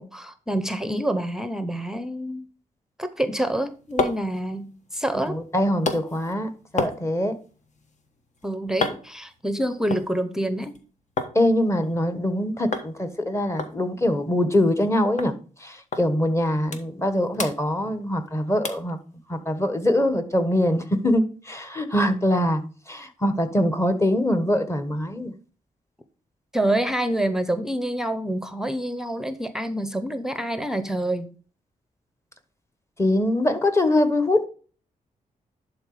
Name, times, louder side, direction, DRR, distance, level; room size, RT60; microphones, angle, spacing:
voice 1, 0.0-2.5 3.0-5.4 8.4-10.8 26.5-31.3, right 1 dB, 5° right, 0.7 m, -27 dB
sound 1, 3.5-11.4 11.7-12.3 12.7-12.9 13.2-13.3 13.6-14.9 15.2-15.3 15.9-16.1 16.4-17.1 17.3-18.3 18.6-18.9 19.4-19.5, left 3 dB, 55° left, 1.3 m, -33 dB
voice 2, 5.3-7.3 11.3-15.3 15.6-19.0 19.3-25.3 33.0-34.5, left 1 dB, 20° left, 1.4 m, -23 dB
11.0 x 3.9 x 5.0 m
cardioid pair, 95°, 14 cm